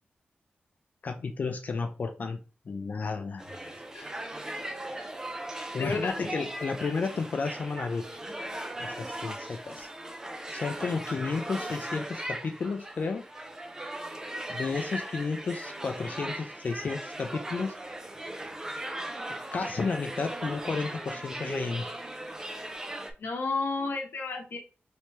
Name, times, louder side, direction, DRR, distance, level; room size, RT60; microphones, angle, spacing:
voice 1, 1.0-2.4 2.7-3.4 3.9-4.2 5.7-8.0 8.8-9.9 10.5-13.3 14.5-17.7 19.5-21.9, left 4 dB, 50° left, 6 dB, 0.4 m, -32 dB
sound 1, 3.4-23.1, right 1 dB, 15° right, 0.4 m, -38 dB
voice 2, 5.8-6.1 23.2-24.6, left 3 dB, 80° left, 1 dB, 0.8 m, -31 dB
3.2 x 3.0 x 2.9 m, 0.34 s
wide cardioid pair, 170°, 4 cm